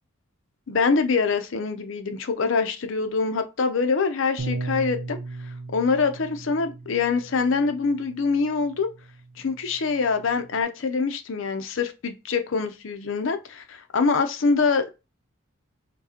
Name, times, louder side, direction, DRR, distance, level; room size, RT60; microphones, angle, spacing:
voice 1, 0.7-5.2 5.7-8.9 9.4-14.9, left 4 dB, 60° left, 0.5 m, -24 dB
Bass guitar, 4.4-10.6, right 3 dB, 60° right, 0.6 m, -37 dB
4.9 x 2.3 x 2.8 m
head